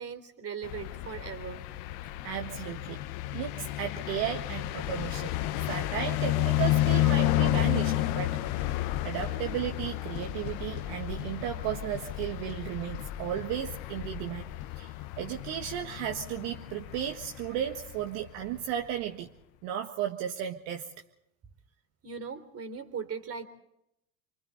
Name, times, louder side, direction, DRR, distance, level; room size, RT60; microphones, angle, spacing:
voice 1, 0.0-1.6 22.0-23.5, right 6 dB, 35° right, 8 dB, 3.7 m, -39 dB
sound 1, 0.6-18.6, left 14 dB, 60° left, 1.2 m, -31 dB
voice 2, 2.2-3.0 3.3-5.3 5.7-14.4 14.8-19.3 19.6-20.9, right 10 dB, 65° right, 3 dB, 1.7 m, -35 dB
29.5 x 24.5 x 4.0 m, 0.82 s
hypercardioid pair, 95°, 43 cm